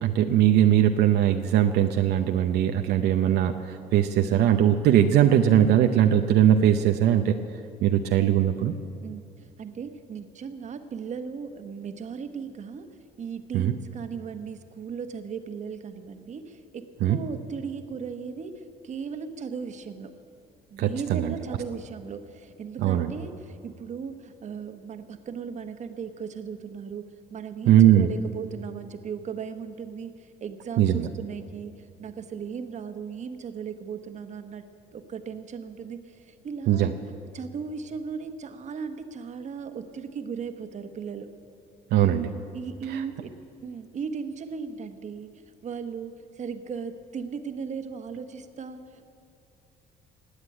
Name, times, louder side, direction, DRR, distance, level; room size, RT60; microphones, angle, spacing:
voice 1, 0.0-7.3 7.8-8.7 13.5-13.7 17.0-17.2 20.8-21.3 22.8-23.1 27.7-28.1 30.8-31.1 36.7-36.9 41.9-42.3 42.9-43.0, right 10 dB, 75° right, 6 dB, 0.8 m, -20 dB
voice 2, 4.2-4.5 9.0-12.9 13.2-20.1 20.7-34.6 34.9-36.9 37.3-41.3 42.5-43.3 43.6-45.3 45.6-49.1, right 6 dB, 45° right, 8 dB, 1.3 m, -37 dB
19.5 x 8.1 x 8.9 m, 2.8 s
cardioid pair, 110°, 17 cm